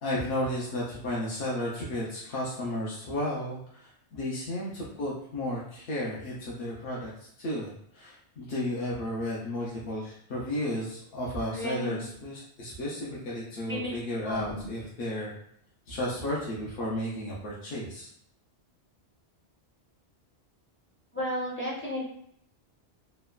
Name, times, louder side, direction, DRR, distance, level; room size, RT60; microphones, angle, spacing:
voice 1, 0.0-7.1 7.4-15.3 15.9-18.1, left 1 dB, 60° left, -6 dB, 0.8 m, -33 dB
voice 2, 11.5-12.0 13.7-13.9 14.3-14.7 21.1-22.0, equal, 15° left, -6 dB, 0.5 m, -33 dB
3.0 x 2.1 x 2.3 m, 0.68 s
omnidirectional pair, 1.1 m